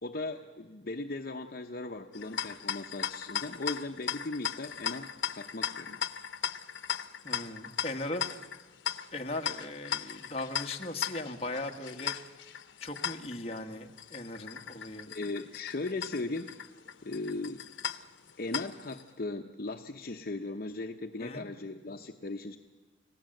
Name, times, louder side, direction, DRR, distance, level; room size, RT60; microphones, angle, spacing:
voice 1, 0.0-6.0 15.1-16.5 17.0-17.6 18.4-22.6, left 2 dB, 50° left, 4 dB, 0.8 m, -38 dB
sound 1, 2.1-19.0, left 9 dB, 80° left, 0.8 m, -38 dB
voice 2, 7.2-8.3 9.1-12.4 12.8-15.1 21.2-21.5, left 2 dB, 30° left, 2 dB, 1.4 m, -38 dB
30.0 x 16.5 x 7.8 m, 1.3 s
head